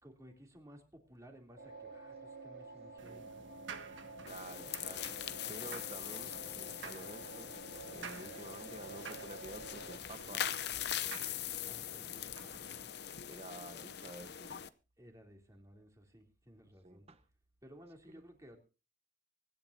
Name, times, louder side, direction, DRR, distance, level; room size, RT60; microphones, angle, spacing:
voice 1, 0.0-3.5 5.5-5.6 11.6-12.5 15.0-17.1 17.6-18.6, equal, 20° right, 3.1 m, -57 dB
sound 1, 1.6-10.0, right 3 dB, 65° right, 3.7 m, -50 dB
sound 2, 3.0-12.9, right 5 dB, 85° right, 1.5 m, -52 dB
voice 2, 4.2-10.5 11.0-11.3 11.9-12.2 12.9-13.0 13.3-14.6 16.8-17.2, right 2 dB, 35° right, 1.1 m, -51 dB
sound 3, 4.3-14.7, left 10 dB, 60° left, 0.8 m, -42 dB
24.5 x 11.0 x 2.8 m
head